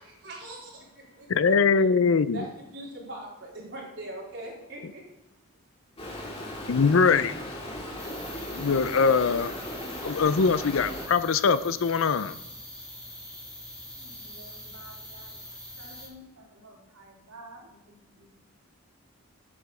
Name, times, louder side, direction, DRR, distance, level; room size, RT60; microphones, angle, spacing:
voice 1, 0.0-1.8 2.3-2.5 2.7-5.0, right 1 dB, 60° right, -4 dB, 3.8 m, -41 dB
voice 2, 1.3-2.5 6.7-7.5 8.5-9.5 10.0-12.4, left 5 dB, 70° left, 14 dB, 0.5 m, -22 dB
Stream, 6.0-11.1, left 1 dB, 25° left, 2.1 m, -37 dB
sound 1, 8.0-16.1, left 1 dB, 5° left, 2.5 m, -44 dB
voice 3, 13.9-18.5, right 1 dB, 90° right, -2 dB, 3.2 m, -51 dB
8.6 x 7.1 x 6.7 m, 0.90 s
head